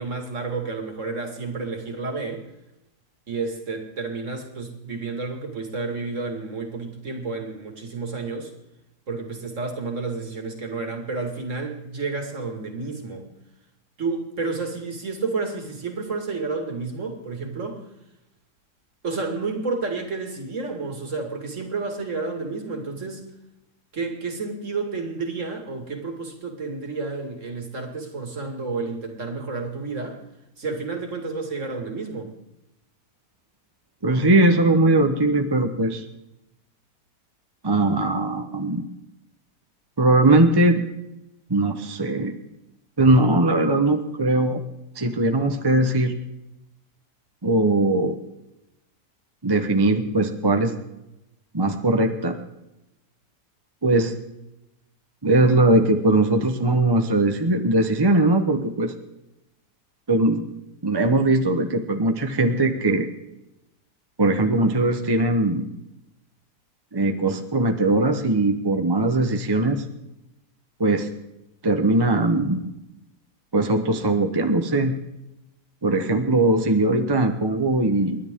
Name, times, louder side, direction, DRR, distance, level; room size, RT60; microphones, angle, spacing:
voice 1, 0.0-2.5 3.3-8.5 9.1-13.3 14.0-17.8 19.0-23.3 23.9-30.2 30.6-32.3, right 4 dB, 45° right, 4 dB, 2.4 m, -30 dB
voice 2, 34.0-36.0 37.6-38.8 40.0-40.8 41.5-42.3 43.0-44.6 45.0-46.1 47.4-48.2 49.4-50.7 51.5-52.4 53.8-54.1 55.2-58.9 60.1-60.5 60.8-63.1 64.2-65.6 66.9-69.8 70.8-71.1 71.6-72.6 73.5-74.9 75.8-78.2, right 2 dB, 20° right, 6 dB, 0.7 m, -20 dB
29.0 x 11.0 x 3.7 m, 0.90 s
omnidirectional pair, 1.8 m